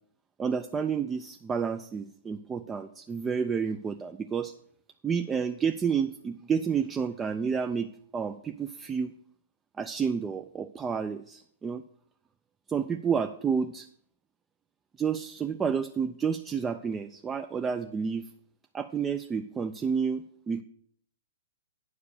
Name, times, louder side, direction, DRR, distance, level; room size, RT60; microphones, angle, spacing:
voice 1, 0.4-4.5 5.0-9.1 9.8-11.8 12.7-13.9 15.0-18.2 18.7-20.6, right 6 dB, 15° right, 8 dB, 0.4 m, -30 dB
9.7 x 4.9 x 6.7 m, 0.63 s
hypercardioid pair, 135°, 0 cm